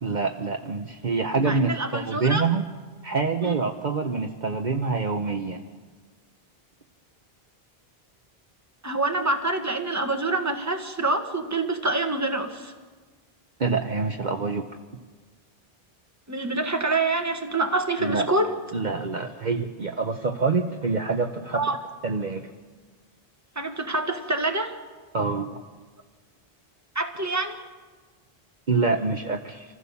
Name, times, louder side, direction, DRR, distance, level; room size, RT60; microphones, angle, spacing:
voice 1, 0.0-2.6 3.0-5.6 13.6-14.6 18.0-18.3 18.7-21.6 22.0-22.5 25.1-25.5 28.7-29.6, right 4 dB, 50° right, 4 dB, 1.1 m, -26 dB
voice 2, 1.4-2.4 3.4-3.6 8.8-12.7 16.3-18.6 21.5-21.8 23.5-24.8 26.9-27.6, right 2 dB, 15° right, 5 dB, 1.5 m, -26 dB
25.5 x 15.5 x 7.1 m, 1.4 s
omnidirectional pair, 1.0 m